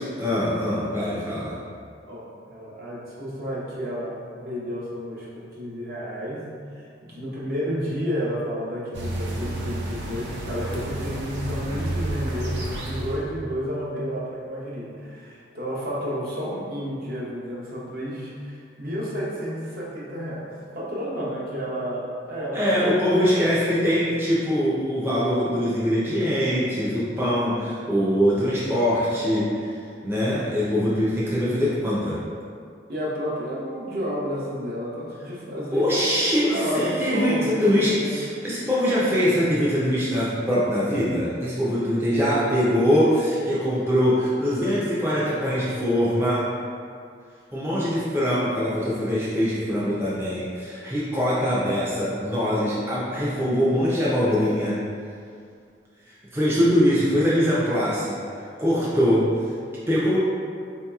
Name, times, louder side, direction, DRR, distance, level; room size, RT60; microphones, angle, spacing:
voice 1, 0.2-1.5 22.5-29.7 30.0-32.2 35.7-46.5 47.5-54.8 56.0-58.2 58.6-59.3 59.9-60.2, equal, 15° right, -9 dB, 0.4 m, -23 dB
voice 2, 2.1-23.1 23.4-24.0 32.9-38.2 41.9-42.5 56.4-56.8, equal, 55° right, -6 dB, 0.8 m, -31 dB
sound 1, 8.9-13.3, right 1 dB, 90° right, 0.5 m, -30 dB
3.9 x 2.8 x 2.3 m, 2.3 s
head